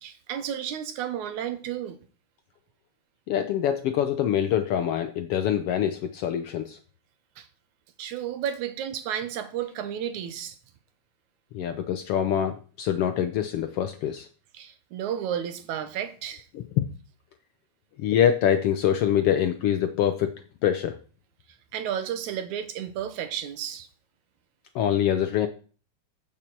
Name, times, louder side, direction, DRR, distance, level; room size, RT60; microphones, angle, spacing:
voice 1, 0.0-2.0 7.4-7.5 8.0-10.6 14.5-16.4 21.7-23.9, right 9 dB, 80° right, 2.5 m, -32 dB
voice 2, 3.3-6.8 11.5-14.3 16.5-16.9 18.0-20.4 20.6-20.9 24.7-25.5, left 10 dB, 75° left, 1.4 m, -25 dB
15.0 x 7.4 x 4.6 m
omnidirectional pair, 3.4 m